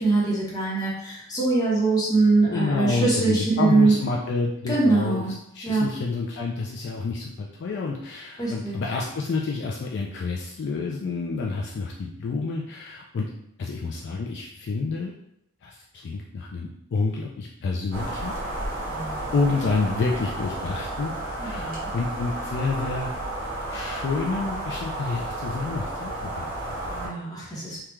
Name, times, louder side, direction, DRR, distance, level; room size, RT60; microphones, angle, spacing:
voice 1, 0.0-3.9 4.7-5.3 5.6-5.9 8.4-8.8 18.9-19.3 21.4-21.9 26.9-27.8, right 3 dB, 15° left, -6 dB, 1.0 m, -23 dB
voice 2, 2.5-5.2 5.5-13.3 13.6-15.1 15.6-18.3 19.3-21.1 21.4-23.1 23.7-26.8, left 3 dB, 50° left, -1 dB, 0.4 m, -29 dB
sound 1, 17.9-27.1, right 1 dB, 65° right, 1.2 m, -32 dB
3.4 x 2.3 x 3.0 m, 0.76 s
head